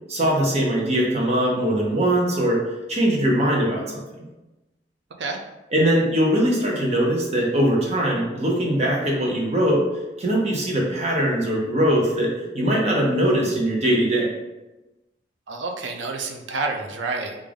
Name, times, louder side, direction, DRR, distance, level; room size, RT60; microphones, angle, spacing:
voice 1, 0.1-2.6 2.9-4.0 5.7-9.8 10.2-14.3, right 1 dB, 35° right, -2 dB, 0.8 m, -21 dB
voice 2, 15.5-17.4, right 3 dB, 80° right, 3 dB, 0.5 m, -28 dB
3.6 x 2.5 x 3.4 m, 1.0 s
head